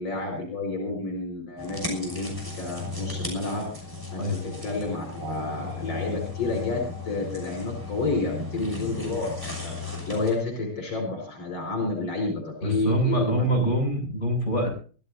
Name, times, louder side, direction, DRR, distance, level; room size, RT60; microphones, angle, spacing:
voice 1, 0.0-3.7 4.1-13.7, left 3 dB, 65° left, 3 dB, 6.0 m, -30 dB
sound 1, 1.6-10.3, left 3 dB, 10° right, 6.2 m, -36 dB
voice 2, 12.6-14.7, right 1 dB, 30° left, 1 dB, 8.1 m, -25 dB
24.0 x 15.5 x 2.8 m, 0.40 s
omnidirectional pair, 2.4 m